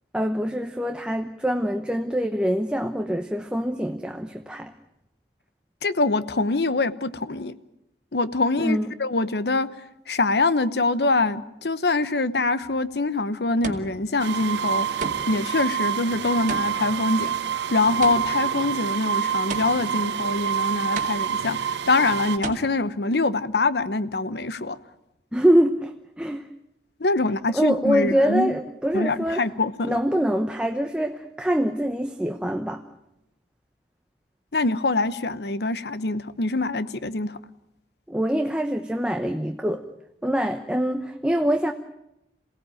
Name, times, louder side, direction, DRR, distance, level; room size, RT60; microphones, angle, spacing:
voice 1, 0.1-4.7 8.6-8.9 25.3-26.5 27.5-29.4 29.8-32.8 38.1-39.8 40.2-41.7, equal, 5° right, 0.9 m, -24 dB
voice 2, 5.8-7.5 8.1-9.7 10.1-17.4 17.7-24.8 27.0-28.5 28.9-30.0 34.5-37.4, left 3 dB, 70° left, 0.9 m, -24 dB
sound 1, 12.6-13.0 13.6-14.2 15.0-15.5 16.5-18.5 19.5-20.1 21.0-21.6 22.4-22.5, right 3 dB, 45° right, 2.3 m, -35 dB
sound 2, 14.2-22.4, right 9 dB, 90° right, 1.0 m, -27 dB
27.5 x 17.0 x 9.1 m
head